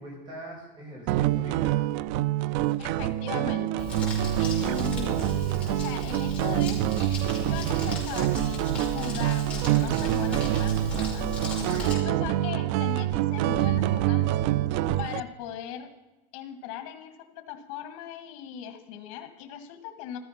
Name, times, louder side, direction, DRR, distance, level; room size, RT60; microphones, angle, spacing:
voice 1, 0.0-1.9 11.6-12.0, right 1 dB, 25° right, -1 dB, 6.4 m, -43 dB
sound 1, 1.1-15.2, right 13 dB, 65° right, 0.5 m, -26 dB
voice 2, 2.8-3.9 4.4-6.8 7.4-11.3 11.6-14.4 15.0-15.9 16.3-20.2, left 8 dB, 75° left, 7 dB, 1.8 m, -39 dB
Crumpling crinkling, 3.8-11.9, left 2 dB, 5° left, 5.6 m, -36 dB
14.0 x 13.5 x 5.8 m, 1.1 s
cardioid pair, 160°, 17 cm